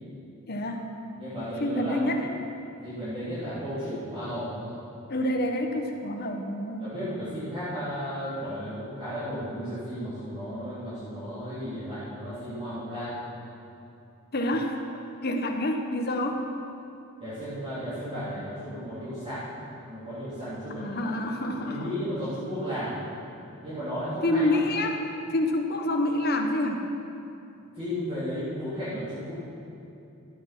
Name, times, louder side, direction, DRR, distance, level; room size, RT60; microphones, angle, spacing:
voice 1, 0.5-0.9 1.6-2.3 5.1-6.9 14.3-14.8 15.2-16.4 20.7-21.9 24.2-25.0 25.3-26.9, left 1 dB, 50° left, 3 dB, 1.1 m, -27 dB
voice 2, 1.2-2.0 2.8-4.7 6.8-13.2 17.2-19.4 19.9-20.9 21.7-23.0 23.6-24.6 27.7-29.3, equal, 30° right, -15 dB, 3.4 m, -34 dB
13.0 x 8.8 x 6.0 m, 2.7 s
head